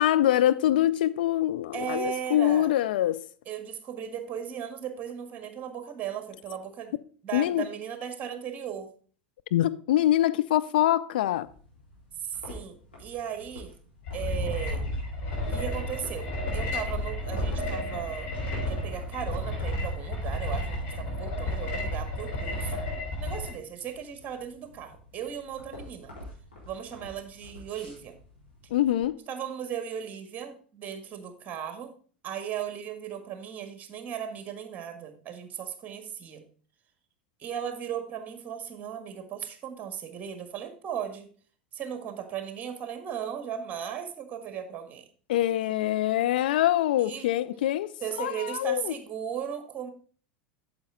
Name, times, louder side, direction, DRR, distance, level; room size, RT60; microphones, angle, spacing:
voice 1, 0.0-3.2 7.3-7.6 9.5-11.5 28.7-29.2 45.3-47.9 48.2-48.9, left 13 dB, 65° left, 0.5 m, -24 dB
voice 2, 1.7-2.7 3.4-6.9 7.2-8.9 12.2-13.8 14.1-14.8 15.5-18.3 18.6-22.8 23.2-26.1 26.6-28.1 29.3-31.9 32.2-36.4 37.4-41.3 41.7-45.0 47.0-47.3 48.0-49.9, right 8 dB, 30° right, 1.6 m, -36 dB
sound 1, 11.4-29.0, left 1 dB, 85° left, 3.9 m, -47 dB
sound 2, 14.1-23.5, left 1 dB, 50° left, 3.6 m, -32 dB
8.8 x 7.0 x 3.8 m
figure-of-eight pair, 80°, 5 cm